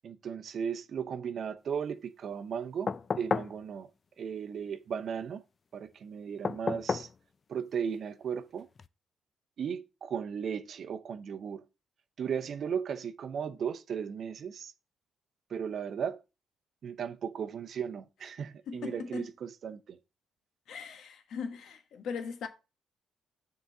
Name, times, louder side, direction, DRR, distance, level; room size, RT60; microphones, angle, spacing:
voice 1, 0.0-2.9 3.1-3.9 4.2-5.4 5.7-7.1 7.5-8.7 9.6-11.6 12.2-14.7 15.5-16.2 16.8-20.0, right 7 dB, 60° right, 0.6 m, -36 dB
sound 1, 2.9-3.6 6.4-7.2 8.8-8.9, left 5 dB, 40° left, 0.4 m, -32 dB
voice 2, 18.7-19.3 20.7-22.5, left 6 dB, 70° left, 1.2 m, -39 dB
7.0 x 3.9 x 6.3 m
cardioid pair, 90°, 0 cm